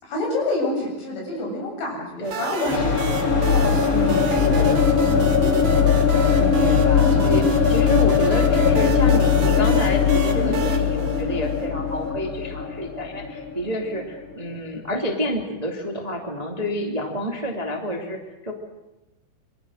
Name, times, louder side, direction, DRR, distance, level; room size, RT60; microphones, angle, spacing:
voice 1, 0.0-3.7 4.4-5.3 10.3-10.5, left 2 dB, 80° left, -1 dB, 9.8 m, -28 dB
sound 1, 2.2-11.9, right 5 dB, 65° right, 1.1 m, -33 dB
sound 2, 2.6-14.4, left 6 dB, 30° left, 1.6 m, -20 dB
voice 2, 3.9-4.8 6.3-18.5, equal, 15° right, 2 dB, 1.6 m, -29 dB
27.0 x 24.0 x 6.5 m, 1.0 s
omnidirectional pair, 5.2 m